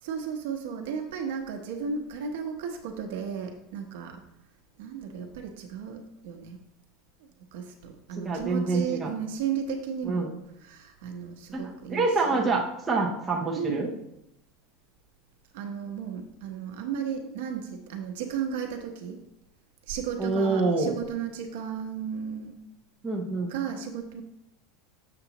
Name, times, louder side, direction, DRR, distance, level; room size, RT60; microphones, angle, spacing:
voice 1, 0.0-4.2 4.8-6.6 7.5-10.3 10.6-12.6 13.5-13.9 15.5-19.2 19.9-22.6 23.4-24.2, right 7 dB, 65° right, 3 dB, 0.8 m, -34 dB
voice 2, 8.2-9.1 10.1-10.3 11.5-13.9 20.2-21.0 23.0-23.5, right 3 dB, 10° right, -2 dB, 0.6 m, -26 dB
6.9 x 6.8 x 2.9 m, 0.81 s
supercardioid pair, 180°, 0 cm